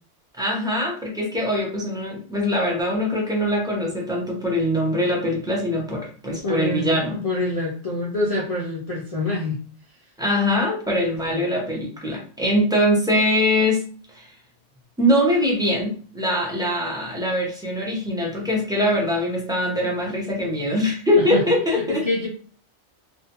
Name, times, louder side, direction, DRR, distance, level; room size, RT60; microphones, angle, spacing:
voice 1, 0.4-7.2 10.2-13.8 14.1-14.3 15.0-22.0, left 1 dB, 5° right, -3 dB, 0.5 m, -22 dB
voice 2, 6.4-9.6 11.3-11.5 21.2-21.5 21.7-22.3, left 2 dB, 65° left, -3 dB, 0.3 m, -26 dB
2.5 x 2.1 x 2.8 m, 0.42 s
omnidirectional pair, 1.2 m